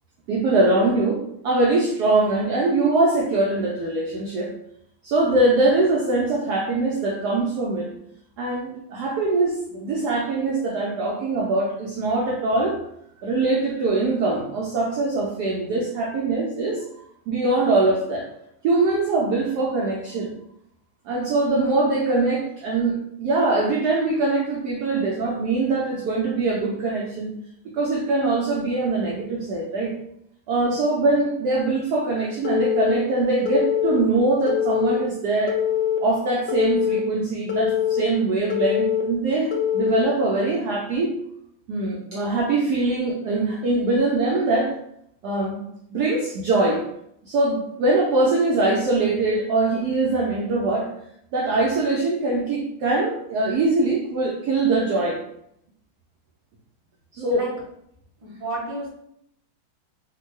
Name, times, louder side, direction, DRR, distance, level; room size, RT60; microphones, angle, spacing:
voice 1, 0.3-4.5 5.0-7.9 8.4-12.8 13.2-16.8 17.3-18.3 18.6-20.3 21.1-27.3 27.7-29.9 30.5-35.6 36.0-41.1 41.7-44.7 45.2-45.6 45.9-46.8 47.2-50.9 51.3-55.2 57.1-57.5, right 2 dB, 85° right, -2 dB, 0.8 m, -22 dB
Telephone, 32.4-33.0 33.5-34.0 34.5-35.0 35.5-36.0 36.5-37.0 37.5-38.0 38.5-39.0 39.5-40.0, left 10 dB, 75° left, 1.2 m, -23 dB
voice 2, 58.2-58.9, right 1 dB, 55° right, -6 dB, 0.3 m, -31 dB
3.5 x 2.2 x 3.1 m, 0.75 s
omnidirectional pair, 2.3 m